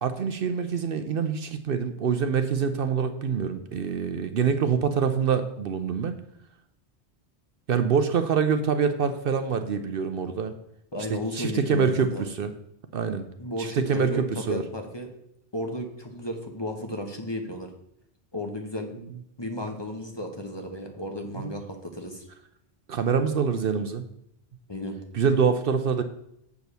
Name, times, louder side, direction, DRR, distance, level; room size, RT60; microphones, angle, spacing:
voice 1, 0.0-6.1 7.7-10.5 11.1-12.5 12.9-13.2 13.6-14.6 21.3-21.5 22.9-24.1 25.1-26.0, right 6 dB, 60° right, 9 dB, 0.8 m, -25 dB
voice 2, 10.9-12.3 13.4-15.1 15.5-17.7 18.3-18.9 19.4-22.3 24.7-25.0, left 1 dB, 25° left, 3 dB, 1.1 m, -34 dB
7.7 x 4.9 x 6.7 m, 0.77 s
omnidirectional pair, 1.1 m